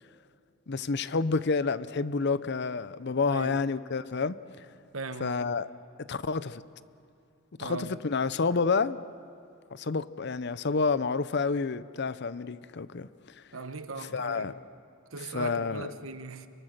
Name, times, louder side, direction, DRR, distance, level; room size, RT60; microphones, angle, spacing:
voice 1, 0.7-4.3 5.2-5.7 6.1-6.6 7.6-9.0 9.7-13.1 14.1-14.5 15.3-15.9, left 4 dB, 55° left, 0.7 m, -29 dB
voice 2, 3.3-3.6 4.9-5.4 7.6-7.9 13.5-14.5 15.1-16.5, right 3 dB, 75° right, 1.2 m, -39 dB
29.0 x 23.0 x 6.7 m
head